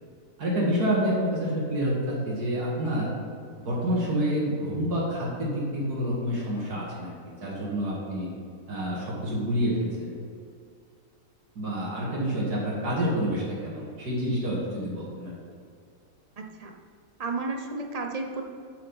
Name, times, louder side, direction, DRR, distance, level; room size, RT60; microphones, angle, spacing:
voice 1, 0.4-3.1 3.6-8.3 8.7-10.1 11.6-15.3, equal, 75° right, -6 dB, 2.4 m, -28 dB
voice 2, 16.4-16.7 17.2-18.4, right 3 dB, 35° right, 3 dB, 0.6 m, -32 dB
7.8 x 7.4 x 5.4 m, 2.4 s
omnidirectional pair, 1.7 m